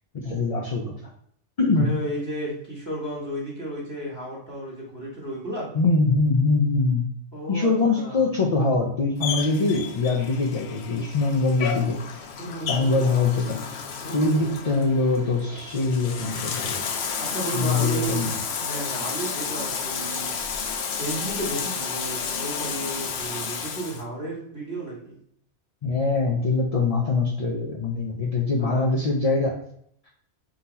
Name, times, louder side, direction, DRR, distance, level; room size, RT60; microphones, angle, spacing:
voice 1, 0.1-0.9 1.6-1.9 5.7-7.1 7.5-12.0 12.7-13.6 14.1-16.8 17.5-18.3 25.8-29.6, left 3 dB, 45° left, 0 dB, 0.5 m, -23 dB
voice 2, 1.7-5.7 7.3-8.3 12.4-13.0 14.0-14.5 17.2-18.3 18.6-20.3 21.0-25.2 28.6-29.0, right 1 dB, 15° right, -5 dB, 1.6 m, -33 dB
Bathtub (filling or washing), 9.2-24.0, left 6 dB, 70° left, 0.8 m, -31 dB
3.8 x 2.9 x 4.0 m, 0.69 s
omnidirectional pair, 1.2 m